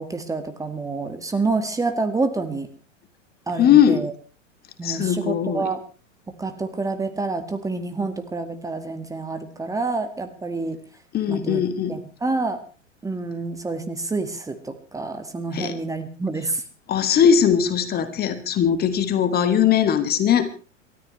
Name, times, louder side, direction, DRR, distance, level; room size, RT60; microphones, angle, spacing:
voice 1, 0.0-2.7 3.5-4.1 4.8-5.8 6.3-10.8 11.3-11.6 11.9-12.6 13.0-16.6, right 3 dB, 10° right, 7 dB, 1.6 m, -28 dB
voice 2, 3.6-4.0 4.8-5.6 11.1-12.0 15.5-15.7 16.9-20.5, left 8 dB, 25° left, 10 dB, 1.6 m, -19 dB
28.5 x 13.5 x 3.1 m, 0.34 s
figure-of-eight pair, 100°, 38 cm